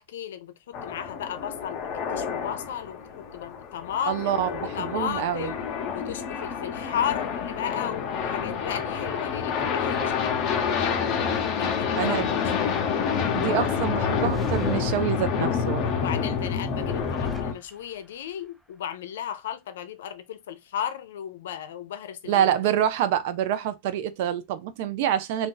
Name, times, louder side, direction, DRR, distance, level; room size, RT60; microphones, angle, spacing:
voice 1, 0.0-4.3 4.6-5.6 5.9-11.1 11.6-12.9 15.9-22.5, left 9 dB, 85° left, 0.5 m, -35 dB
sound 1, 0.7-17.5, left 6 dB, 45° left, 0.8 m, -28 dB
voice 2, 4.1-5.5 12.0-12.4 13.3-16.0 22.3-25.5, right 10 dB, 65° right, 0.5 m, -26 dB
sound 2, 13.7-15.6 16.7-18.2, right 1 dB, 5° right, 0.4 m, -41 dB
2.6 x 2.4 x 3.8 m
supercardioid pair, 135°, 0 cm